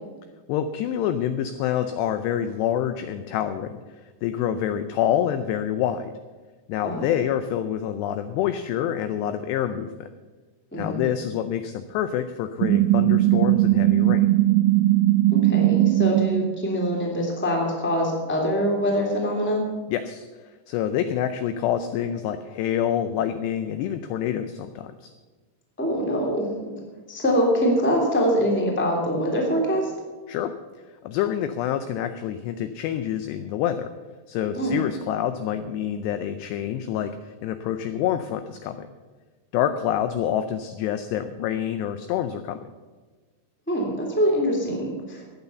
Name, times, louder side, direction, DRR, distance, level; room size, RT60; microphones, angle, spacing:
voice 1, 0.5-3.8 4.2-6.1 6.7-10.1 10.8-14.3 19.9-20.3 20.7-25.1 30.3-30.5 31.0-33.9 34.3-38.9 39.5-42.7, left 10 dB, 85° left, 10 dB, 2.4 m, -27 dB
voice 2, 10.7-11.0 15.3-19.6 25.8-26.7 27.1-29.9 34.5-34.7 43.7-45.4, equal, 5° left, 0 dB, 1.5 m, -24 dB
sound 1, 12.6-16.5, right 15 dB, 90° right, 3.3 m, -19 dB
15.0 x 9.5 x 7.0 m, 1.3 s
omnidirectional pair, 5.6 m